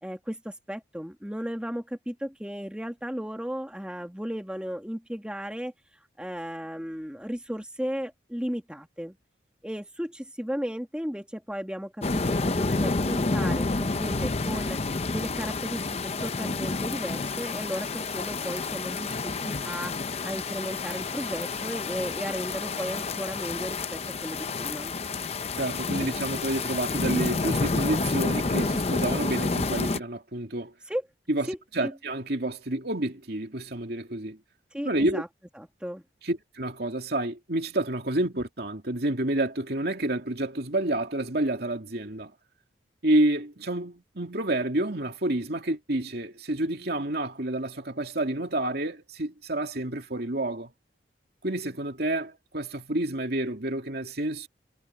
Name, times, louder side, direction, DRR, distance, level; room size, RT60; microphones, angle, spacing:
voice 1, 0.0-5.7 6.2-9.2 9.6-14.8 15.1-25.0 30.9-31.0 31.5-31.9 34.7-35.3 35.6-36.0, equal, 5° right, 1.8 m, -35 dB
sound 1, 12.0-30.0, left 3 dB, 35° left, 0.7 m, -29 dB
voice 2, 25.6-30.7 31.3-31.5 31.7-34.4 34.8-35.2 36.2-42.3 43.0-50.7 51.4-54.5, right 1 dB, 55° right, 2.7 m, -29 dB
head